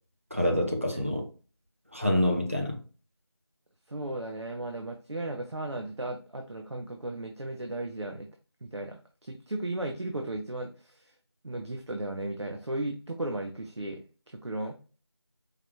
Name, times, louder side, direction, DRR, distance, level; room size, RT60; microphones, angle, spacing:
voice 1, 0.3-1.3 1.9-2.8, left 1 dB, 30° right, 0.6 m, -26 dB
voice 2, 3.9-8.3 8.6-11.1 11.4-14.0 14.4-14.8, right 1 dB, 90° right, 0.8 m, -35 dB
4.8 x 2.3 x 3.0 m
figure-of-eight pair, 175°, 14 cm